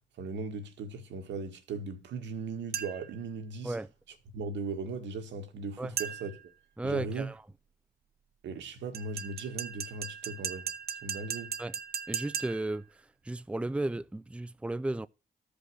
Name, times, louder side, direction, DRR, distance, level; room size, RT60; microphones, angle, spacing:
voice 1, 0.2-3.7 4.3-6.3 6.8-7.3 8.4-10.7 11.0-11.6, right 4 dB, 85° right, 1.8 m, -38 dB
sound 1, 2.7-3.2 6.0-6.5 8.9-12.8, right 7 dB, 60° right, 0.9 m, -38 dB
voice 2, 6.8-7.4 11.6-11.7 12.1-15.1, right 2 dB, 5° right, 0.5 m, -34 dB
13.0 x 5.3 x 6.3 m
cardioid pair, 65°, 18 cm